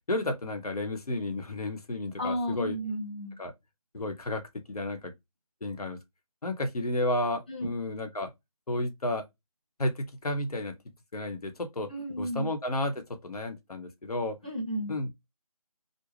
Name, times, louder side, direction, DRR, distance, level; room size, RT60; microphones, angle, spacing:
voice 1, 0.1-2.8 3.4-3.5 3.9-4.4 4.7-5.1 5.6-6.0 6.4-8.3 8.7-9.2 9.8-10.7 11.1-11.9 12.2-14.4 14.9-15.3, left 1 dB, 85° left, 0.9 m, -32 dB
voice 2, 2.2-3.4 7.5-7.7 11.9-12.5 14.4-14.9, equal, 15° left, 0.4 m, -33 dB
2.5 x 2.0 x 3.1 m
figure-of-eight pair, 165°, 19 cm